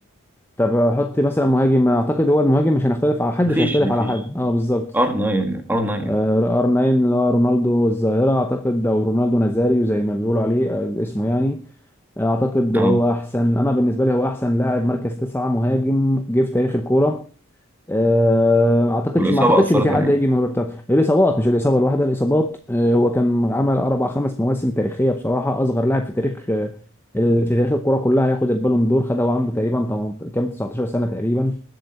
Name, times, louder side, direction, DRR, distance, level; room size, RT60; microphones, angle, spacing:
voice 1, 0.6-4.9 6.1-11.6 12.2-17.3 17.9-26.7 27.1-31.6, left 1 dB, 10° left, 0.7 m, -19 dB
voice 2, 3.5-4.1 4.9-6.2 12.7-13.0 19.2-20.1, right 1 dB, 10° right, 1.8 m, -21 dB
20.5 x 7.8 x 4.3 m
head